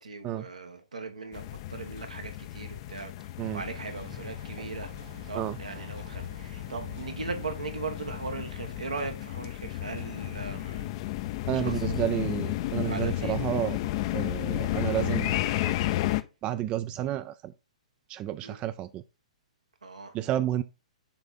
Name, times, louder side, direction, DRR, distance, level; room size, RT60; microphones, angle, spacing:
voice 1, 0.0-3.1 3.5-4.9 5.3-10.9 11.6-11.9 12.8-13.6 18.4-18.6 19.8-20.1, right 4 dB, 85° right, 1.3 m, -38 dB
sound 1, 1.3-16.2, left 15 dB, 45° left, 0.5 m, -33 dB
sound 2, 3.4-9.4, right 5 dB, 60° right, 2.2 m, -50 dB
voice 2, 11.5-13.8 14.1-15.8 16.4-17.5 18.1-19.0 20.1-20.6, right 12 dB, 30° right, 0.4 m, -31 dB
6.9 x 3.5 x 3.9 m
figure-of-eight pair, 120°, 4 cm